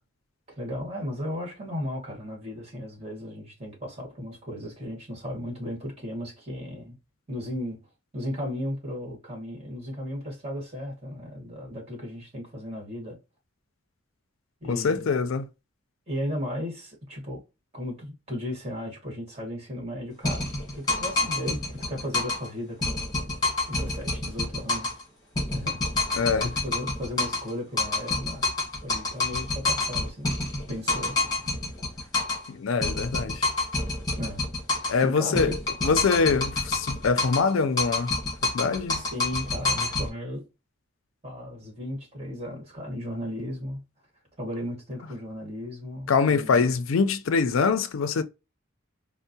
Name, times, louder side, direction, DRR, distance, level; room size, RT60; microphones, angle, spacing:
voice 1, 0.5-7.0 7.3-7.9 8.1-13.2 14.6-15.2 16.1-17.4 17.7-23.0 23.7-24.9 25.5-25.8 26.2-28.5 28.8-30.3 30.7-31.2 34.2-34.5 35.0-35.5 38.9-40.5 41.2-43.8 44.4-46.7, left 1 dB, 30° right, 1.6 m, -35 dB
voice 2, 14.7-15.4 26.2-26.5 32.5-33.4 34.9-35.5 35.8-38.1 38.4-39.0 46.1-48.2, left 5 dB, 90° left, 0.4 m, -24 dB
sound 1, 20.2-22.5 22.8-25.0 25.4-27.5 27.8-32.5 32.8-35.0 35.4-37.5 37.8-40.1, left 2 dB, 20° left, 1.4 m, -28 dB
4.4 x 2.1 x 2.6 m
head